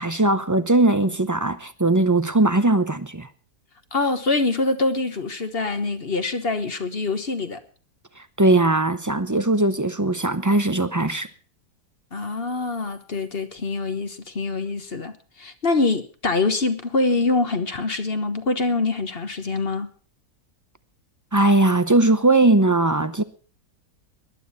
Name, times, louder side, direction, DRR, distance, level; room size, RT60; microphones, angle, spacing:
voice 1, 0.0-3.3 8.4-11.3 21.3-23.2, right 2 dB, 25° right, 0.3 m, -19 dB
voice 2, 3.9-7.6 12.1-19.9, left 3 dB, 40° left, 1.4 m, -24 dB
19.5 x 12.0 x 4.2 m
omnidirectional pair, 1.7 m